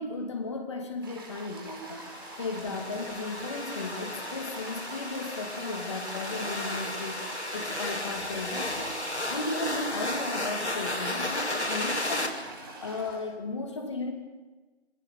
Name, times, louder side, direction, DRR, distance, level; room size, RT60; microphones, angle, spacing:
voice 1, 0.0-2.1 2.4-7.2 7.5-9.0 9.3-12.4 12.8-14.1, left 3 dB, 25° left, 4 dB, 3.1 m, -35 dB
Toilet flush, 1.0-13.2, right 2 dB, 20° right, 4.3 m, -45 dB
sound 1, 1.8-12.3, left 1 dB, 85° left, 6.0 m, -34 dB
26.0 x 17.5 x 9.4 m, 1.2 s
figure-of-eight pair, 165°, 33 cm